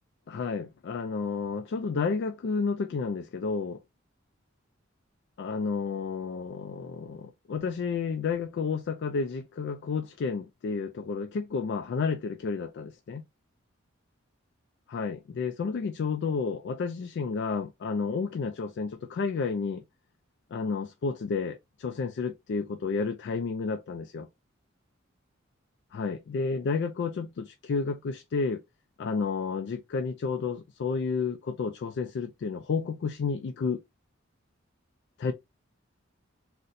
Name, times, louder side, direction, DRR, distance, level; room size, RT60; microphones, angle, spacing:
voice 1, 0.3-3.8 5.4-13.2 14.9-19.8 20.5-24.3 25.9-28.6 29.0-33.8 35.2-35.3, left 5 dB, 60° left, 0.3 m, -31 dB
4.0 x 2.1 x 2.5 m
head